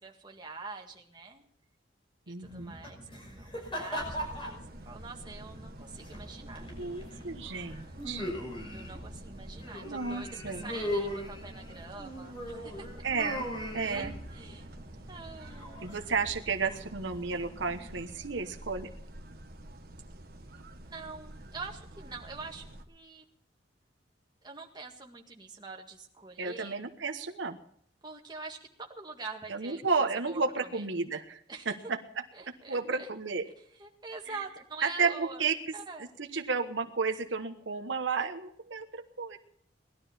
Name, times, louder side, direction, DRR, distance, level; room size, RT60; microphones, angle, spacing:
voice 1, 0.0-1.4 2.3-6.7 8.6-13.0 13.8-14.7 15.1-15.9 20.9-23.2 24.4-26.7 28.0-30.8 31.5-31.7 32.3-33.1 33.8-36.1, right 4 dB, 20° right, 1 dB, 1.9 m, -45 dB
voice 2, 2.3-2.7 6.8-8.3 9.8-10.6 13.0-13.5 13.7-14.1 15.8-18.9 26.4-27.6 29.5-32.0 32.7-33.5 34.3-34.4 34.8-39.4, right 4 dB, 75° right, 5 dB, 1.2 m, -32 dB
sound 1, 2.4-18.0, left 1 dB, 25° left, 5.7 m, -40 dB
sound 2, 4.0-22.8, right 1 dB, 50° right, 1.4 m, -48 dB
19.0 x 12.5 x 4.4 m, 0.66 s
head